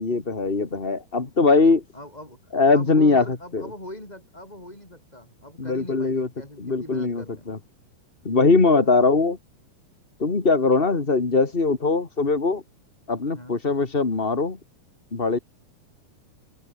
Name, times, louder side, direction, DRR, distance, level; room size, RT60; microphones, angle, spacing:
voice 1, 0.0-1.8 2.5-3.2 3.5-3.7 5.6-6.3 6.6-7.6 8.2-9.4 10.2-12.6 13.1-14.6 15.1-15.4, left 3 dB, 60° left, 0.5 m, -21 dB
voice 2, 1.9-2.4 2.7-7.5 8.8-9.1 13.3-13.6, left 1 dB, 10° left, 7.1 m, -41 dB
open air
omnidirectional pair, 5.0 m